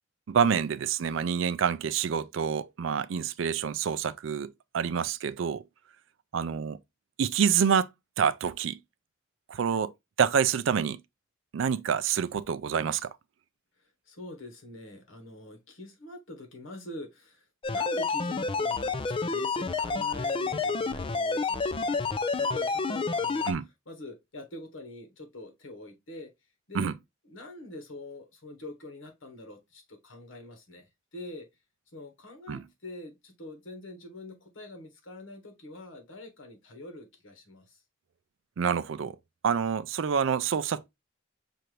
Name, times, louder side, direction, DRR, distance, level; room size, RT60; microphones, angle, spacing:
voice 1, 0.3-5.6 6.3-6.8 7.2-7.9 8.2-8.8 9.5-9.9 10.2-11.0 11.5-13.1 23.5-23.7 26.7-26.9 32.5-32.6 38.6-39.2 39.4-40.9, right 7 dB, 70° right, 0.4 m, -27 dB
voice 2, 14.1-23.5 23.9-26.3 26.7-26.9 27.3-31.5 31.9-37.8, left 2 dB, 80° left, 1.4 m, -45 dB
sound 1, 17.6-23.5, left 4 dB, 25° left, 0.4 m, -29 dB
5.6 x 2.6 x 3.1 m
head